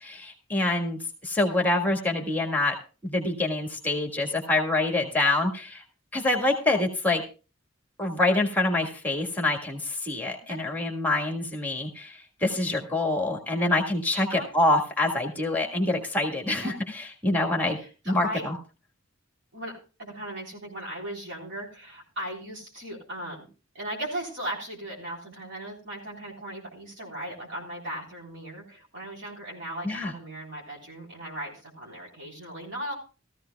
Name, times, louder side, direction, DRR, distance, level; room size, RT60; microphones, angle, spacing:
voice 1, 0.0-2.7 3.0-5.8 6.1-7.2 8.0-17.8 18.0-18.5 29.8-30.1, left 2 dB, 10° left, 3 dB, 1.7 m, -26 dB
voice 2, 17.8-18.5 19.5-23.5 23.7-32.9, right 1 dB, 60° right, -2 dB, 3.7 m, -37 dB
16.5 x 14.5 x 2.3 m, 0.34 s
head